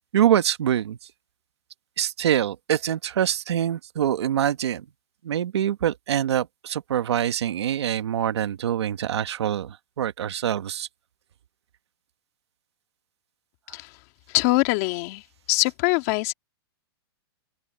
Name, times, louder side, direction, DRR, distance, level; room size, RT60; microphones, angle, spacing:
voice 1, 0.1-1.0 2.0-4.8 5.2-10.9, right 10 dB, 85° right, 1.6 m, -25 dB
voice 2, 13.7-14.0 14.3-15.2 15.5-16.3, left 23 dB, 35° left, 2.5 m, -23 dB
open air
supercardioid pair, 170°, 14 cm